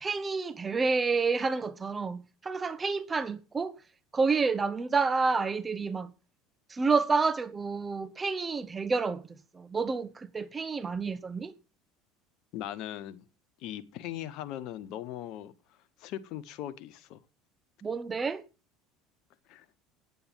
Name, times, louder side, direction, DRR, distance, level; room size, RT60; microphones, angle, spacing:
voice 1, 0.0-3.7 4.1-6.1 6.7-9.3 9.5-11.5 17.8-18.4, right 4 dB, 25° right, 1.1 m, -29 dB
voice 2, 12.5-13.3 13.6-15.5 16.0-17.2 19.5-19.6, left 12 dB, 60° left, 1.2 m, -39 dB
9.2 x 9.0 x 8.9 m
hypercardioid pair, 70°, 0 cm